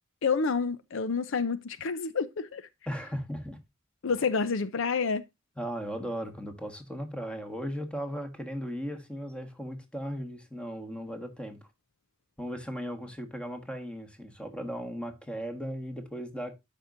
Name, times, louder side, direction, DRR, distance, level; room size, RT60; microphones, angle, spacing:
voice 1, 0.2-2.7 4.0-5.2, left 5 dB, 65° left, 0.6 m, -29 dB
voice 2, 2.9-3.6 5.6-11.6 12.4-16.5, equal, 5° left, 1.4 m, -37 dB
12.0 x 5.3 x 2.5 m
head